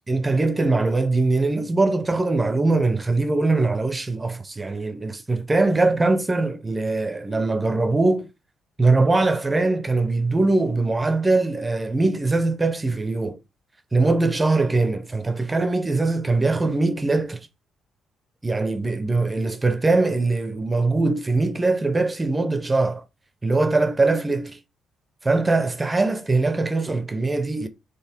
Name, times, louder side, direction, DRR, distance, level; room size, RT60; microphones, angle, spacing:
voice 1, 0.1-8.3 8.8-13.4 13.9-17.5 18.4-23.0 23.4-24.6 25.2-27.7, right 3 dB, 20° right, 0.6 m, -22 dB
3.9 x 3.1 x 4.3 m
cardioid pair, 90°, 0 cm